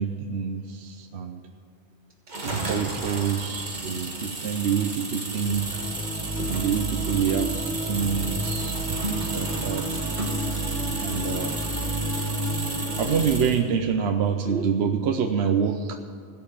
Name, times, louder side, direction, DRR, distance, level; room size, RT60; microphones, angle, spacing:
voice 1, 0.0-1.4 2.4-5.9 6.5-10.0 11.0-11.6 13.0-16.0, right 7 dB, 70° right, 5 dB, 1.0 m, -27 dB
sound 1, 2.3-13.7, right 2 dB, 40° right, 1.6 m, -33 dB
sound 2, 5.3-13.3, right 1 dB, 85° right, 2.1 m, -31 dB
16.5 x 5.8 x 8.4 m, 2.3 s
omnidirectional pair, 1.2 m